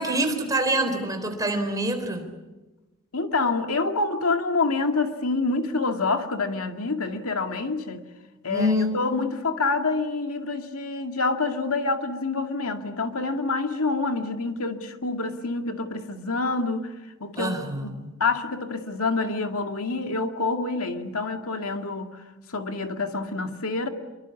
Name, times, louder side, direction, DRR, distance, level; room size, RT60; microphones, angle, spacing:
voice 1, 0.0-2.3 8.5-9.0 17.4-18.1, right 1 dB, 15° right, 5 dB, 3.9 m, -26 dB
voice 2, 3.1-8.0 8.4-16.9 17.2-22.2 22.5-23.9, left 3 dB, 85° left, 5 dB, 2.2 m, -27 dB
28.0 x 23.5 x 8.4 m, 1.1 s
head